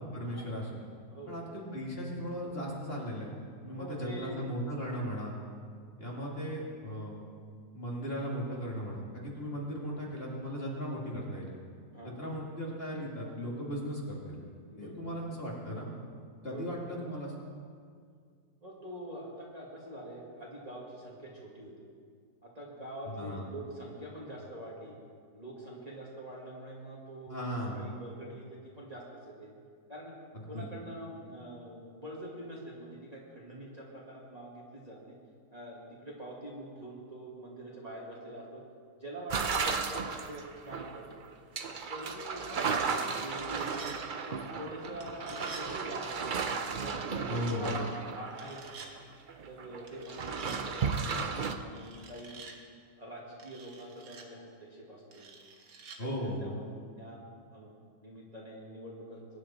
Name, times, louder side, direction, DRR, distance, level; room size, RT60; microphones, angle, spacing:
voice 1, 0.1-0.8 1.3-3.3 3.6-5.4 6.0-7.2 7.7-11.5 12.0-14.4 14.8-15.9 16.4-17.5 23.1-23.5 27.3-27.8 30.5-30.7 47.3-47.7 56.0-56.5, equal, 35° left, -4 dB, 2.4 m, -37 dB
voice 2, 3.7-4.4 11.9-12.2 14.6-15.0 16.5-16.8 18.6-21.7 22.4-25.0 25.3-27.5 27.7-29.5 29.9-30.1 30.5-35.2 35.5-38.6 39.0-41.2 41.9-43.9 44.3-46.4 46.8-48.6 49.5-51.2 51.6-52.5 53.0-55.3 55.8-57.7 58.0-59.2, right 1 dB, 25° right, -5 dB, 2.3 m, -45 dB
sound 1, 39.3-49.0 49.3-51.5, right 5 dB, 60° right, 0.5 m, -35 dB
sound 2, 43.4-44.0 45.0-45.7 48.3-48.9 49.9-50.6 51.6-52.6 53.4-54.3 55.1-56.0, right 5 dB, 90° right, 1.9 m, -49 dB
23.0 x 10.0 x 4.3 m, 2.1 s
omnidirectional pair, 1.8 m